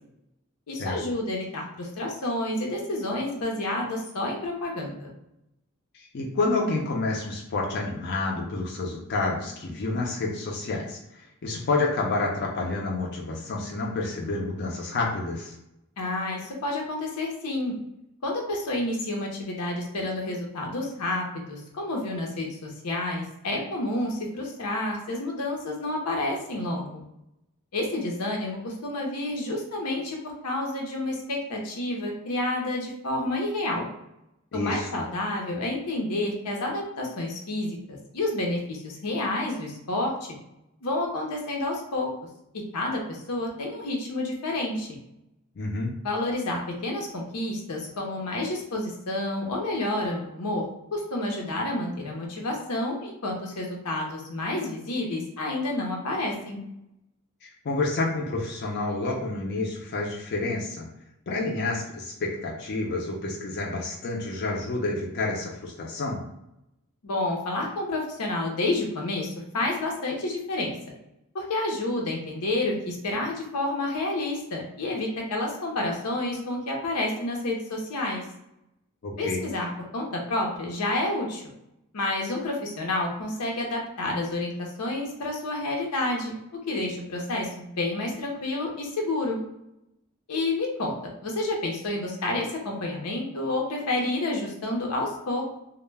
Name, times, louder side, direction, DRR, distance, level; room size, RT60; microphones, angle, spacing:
voice 1, 0.7-5.1 16.0-17.7 18.2-27.0 27.7-33.9 34.5-40.1 40.8-42.1 42.7-44.9 46.0-50.6 50.9-56.6 67.0-70.7 71.3-78.2 79.2-79.7 79.9-81.4 81.9-86.4 86.7-89.4 90.3-90.9 91.2-95.4, left 2 dB, 85° left, 0 dB, 0.7 m, -29 dB
voice 2, 5.9-15.6 34.5-34.9 45.6-45.9 57.4-60.9 61.3-66.2 79.0-79.4, left 3 dB, 50° left, -2 dB, 0.4 m, -29 dB
2.1 x 2.1 x 3.2 m, 0.86 s
head